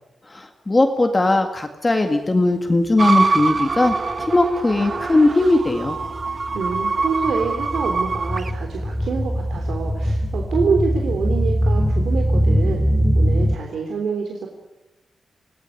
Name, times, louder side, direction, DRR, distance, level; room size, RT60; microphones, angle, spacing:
voice 1, 0.3-6.0, left 2 dB, 20° left, 5 dB, 2.0 m, -19 dB
sound 1, 3.0-8.5, right 4 dB, 40° right, 1.1 m, -24 dB
sound 2, 3.1-4.0 4.2-13.6, equal, 5° left, 1.0 m, -22 dB
voice 2, 6.5-12.8 13.1-14.5, right 5 dB, 90° right, 2 dB, 3.4 m, -26 dB
28.0 x 18.5 x 8.5 m, 0.96 s
wide cardioid pair, 150°, 0 cm